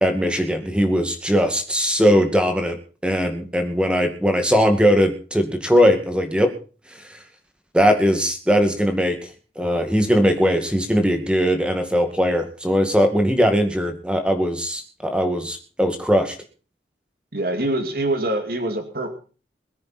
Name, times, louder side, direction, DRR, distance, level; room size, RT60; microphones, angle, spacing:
voice 1, 0.0-2.8 3.0-6.5 7.7-9.2 9.6-16.4, equal, 5° right, 5 dB, 2.2 m, -19 dB
voice 2, 17.3-19.1, right 1 dB, 55° right, 6 dB, 2.4 m, -24 dB
22.0 x 9.8 x 4.4 m, 0.37 s
head